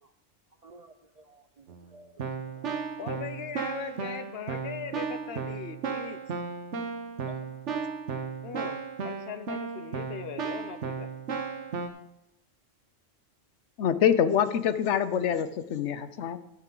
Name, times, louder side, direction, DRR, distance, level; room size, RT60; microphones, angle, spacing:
voice 1, 0.6-2.3 2.6-2.8 7.2-7.5, right 3 dB, 50° right, 7 dB, 0.5 m, -53 dB
Keyboard (musical), 1.7-1.8 2.2-11.9, right 5 dB, 85° right, 1.3 m, -35 dB
voice 2, 3.0-6.2 8.4-11.1, left 7 dB, 65° left, 11 dB, 0.8 m, -40 dB
voice 3, 13.8-16.4, left 8 dB, 85° left, 12 dB, 1.0 m, -25 dB
12.0 x 9.1 x 3.8 m, 0.86 s
omnidirectional pair, 1.2 m